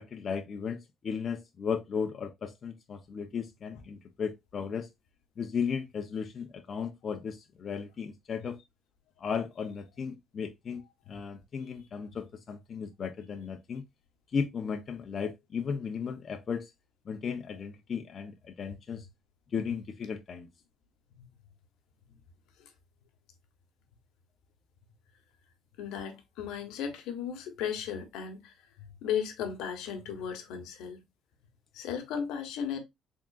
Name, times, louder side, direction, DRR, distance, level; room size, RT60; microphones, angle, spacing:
voice 1, 0.0-4.9 5.4-8.6 9.2-10.8 11.1-13.8 14.3-16.7 17.1-19.1 19.5-20.5, left 6 dB, 45° left, 0.6 m, -35 dB
voice 2, 25.8-28.5 29.0-31.0 31.7-32.8, left 8 dB, 85° left, 1.0 m, -35 dB
3.7 x 3.6 x 2.2 m
cardioid pair, 100°, 0 cm